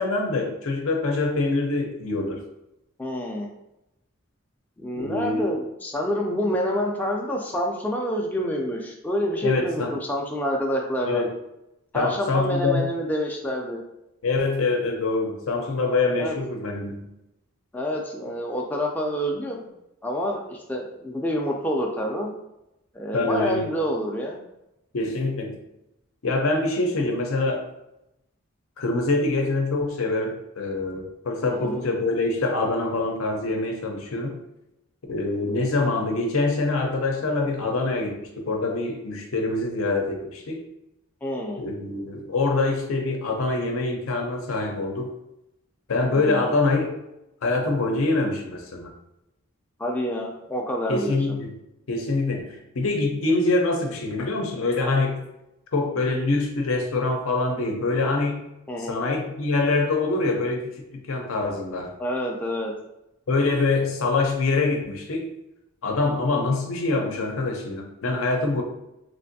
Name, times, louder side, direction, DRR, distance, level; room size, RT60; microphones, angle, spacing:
voice 1, 0.0-2.4 5.0-5.5 9.4-9.9 11.0-11.3 11.9-12.9 14.2-17.0 23.1-23.7 24.9-25.5 26.2-27.7 28.8-34.4 35.1-40.6 41.6-45.1 45.9-46.9 47.4-48.9 50.9-51.5 51.9-55.2 55.7-58.5 58.9-60.7 61.1-61.9 63.3-65.3 65.8-68.6, left 3 dB, 80° left, 2 dB, 0.6 m, -25 dB
voice 2, 3.0-3.5 4.8-11.2 11.9-13.8 16.2-16.4 17.7-19.7 20.0-22.3 22.9-24.4 31.4-31.8 41.2-41.6 46.1-46.5 49.8-51.4 58.7-59.1 62.0-62.7, equal, 10° left, 0 dB, 0.3 m, -27 dB
3.2 x 2.5 x 2.6 m, 0.89 s
head